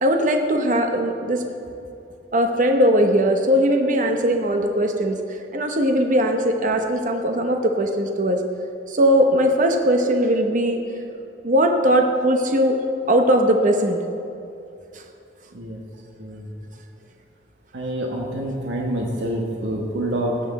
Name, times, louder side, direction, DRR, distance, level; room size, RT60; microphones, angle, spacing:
voice 1, 0.0-1.4 2.3-5.2 5.5-8.4 8.9-10.8 11.4-12.8 13.1-14.0, equal, 45° right, 4 dB, 0.9 m, -19 dB
voice 2, 16.2-16.5 17.7-20.4, right 1 dB, 80° right, -1 dB, 1.3 m, -27 dB
14.5 x 8.7 x 4.1 m, 2.6 s
head